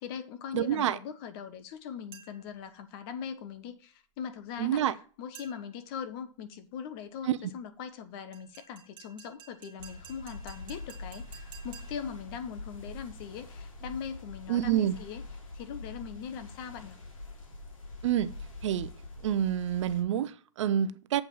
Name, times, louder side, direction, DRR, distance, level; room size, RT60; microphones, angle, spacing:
voice 1, 0.0-15.2 15.5-17.0, left 7 dB, 45° left, 1.2 m, -41 dB
voice 2, 0.5-1.0 4.6-4.9 7.3-7.4 14.5-14.9 18.0-18.3 18.6-18.9 19.2-21.2, right 10 dB, 65° right, 0.7 m, -27 dB
sound 1, 2.1-2.6 5.3-5.9 8.3-12.2, right 7 dB, 30° right, 2.6 m, -52 dB
sound 2, 9.8-20.0, left 2 dB, 90° left, 2.3 m, -45 dB
7.7 x 4.6 x 7.0 m
hypercardioid pair, 125°, 17 cm